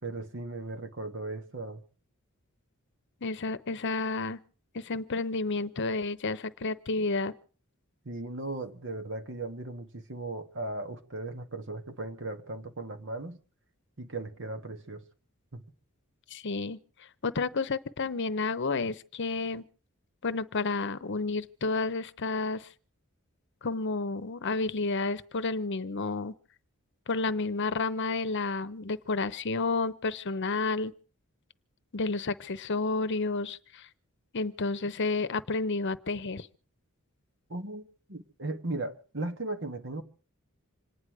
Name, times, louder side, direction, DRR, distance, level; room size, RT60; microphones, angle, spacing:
voice 1, 0.0-1.8 8.0-13.4 14.0-15.0 15.5-15.6 37.5-40.0, right 2 dB, 60° right, 1.8 m, -37 dB
voice 2, 3.2-4.4 4.7-7.3 16.3-16.8 17.2-19.6 20.2-22.7 23.6-26.3 27.1-30.9 31.9-33.9 34.3-36.5, left 3 dB, 55° left, 0.8 m, -31 dB
26.5 x 10.0 x 4.8 m
head